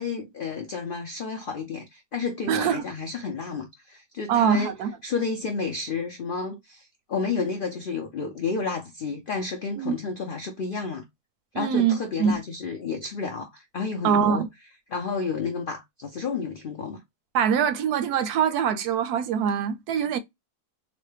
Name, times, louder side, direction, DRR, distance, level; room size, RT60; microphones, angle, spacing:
voice 1, 0.0-4.7 5.0-11.0 11.5-14.4 14.9-17.0, left 4 dB, 75° left, 0.4 m, -31 dB
voice 2, 2.5-2.8 4.3-4.9 9.8-10.0 11.5-12.4 14.0-14.5 17.3-20.2, right 7 dB, 80° right, 1.1 m, -23 dB
3.9 x 2.1 x 3.2 m
omnidirectional pair, 1.7 m